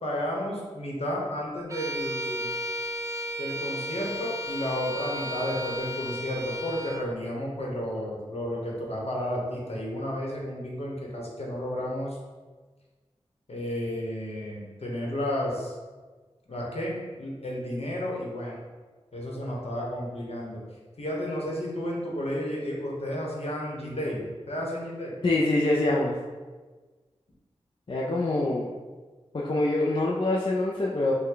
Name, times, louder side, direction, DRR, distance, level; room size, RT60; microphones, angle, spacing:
voice 1, 0.0-2.6 3.4-12.2 13.5-15.7 16.5-18.6 19.1-20.6 21.0-25.1, equal, 65° left, -3 dB, 1.1 m, -32 dB
Bowed string instrument, 1.7-7.1, equal, 30° right, 0.5 m, -34 dB
voice 2, 25.2-26.1 27.9-28.7 29.3-31.1, left 2 dB, 45° left, -4 dB, 0.5 m, -25 dB
5.3 x 2.2 x 3.8 m, 1.4 s
wide cardioid pair, 65°, 11 cm